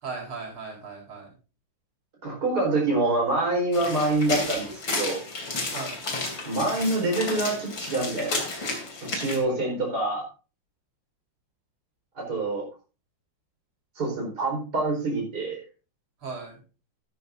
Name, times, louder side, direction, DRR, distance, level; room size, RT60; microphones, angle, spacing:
voice 1, 0.0-1.3 5.7-6.0 9.2-9.6 16.2-16.6, right 4 dB, 85° right, 0 dB, 5.1 m, -37 dB
voice 2, 2.2-5.2 6.4-8.5 9.0-10.2 12.2-12.7 14.0-15.6, right 2 dB, 50° right, 0 dB, 5.0 m, -26 dB
sound 1, 3.7-9.4, left 3 dB, 65° left, 3.8 m, -32 dB
13.0 x 13.0 x 2.6 m, 0.34 s
omnidirectional pair, 2.3 m